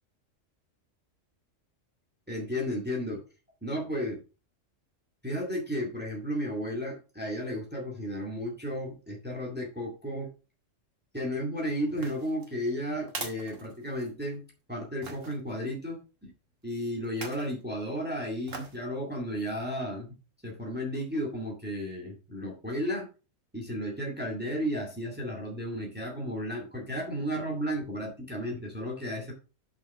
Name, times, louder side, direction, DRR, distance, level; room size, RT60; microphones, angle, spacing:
voice 1, 2.3-3.2 3.6-4.2 5.2-10.3 11.1-14.4 14.7-16.3 16.6-20.1 20.4-23.1 23.5-29.3, equal, 10° right, -1 dB, 2.1 m, -33 dB
sound 1, 11.9-14.3 15.0-15.4 17.0-17.5 18.5-18.8 19.3-19.4, right 3 dB, 80° right, 2.3 m, -42 dB
6.3 x 5.3 x 5.7 m, 0.33 s
omnidirectional pair, 1.3 m